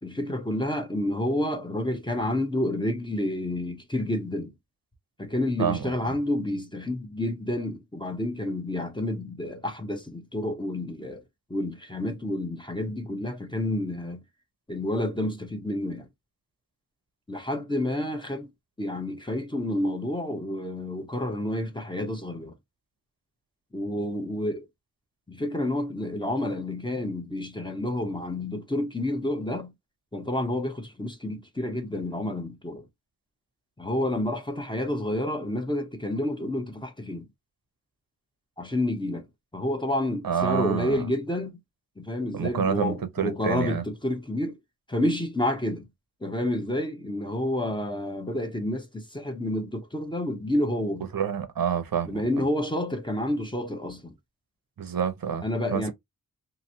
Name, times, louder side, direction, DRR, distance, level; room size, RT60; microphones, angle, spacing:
voice 1, 0.0-4.5 5.2-11.2 11.5-14.2 14.7-16.1 17.3-18.5 18.8-22.5 23.7-24.7 25.3-29.7 30.1-32.9 33.8-37.3 38.6-39.3 39.5-41.6 42.0-44.6 44.9-45.9 46.2-51.1 52.1-54.1 55.4-55.9, left 1 dB, 15° left, 0.8 m, -29 dB
voice 2, 5.6-6.1 40.2-41.0 42.3-43.8 51.1-52.2 54.8-55.4 55.7-55.9, right 7 dB, 85° right, 0.7 m, -28 dB
3.0 x 2.6 x 2.6 m
wide cardioid pair, 85°, 34 cm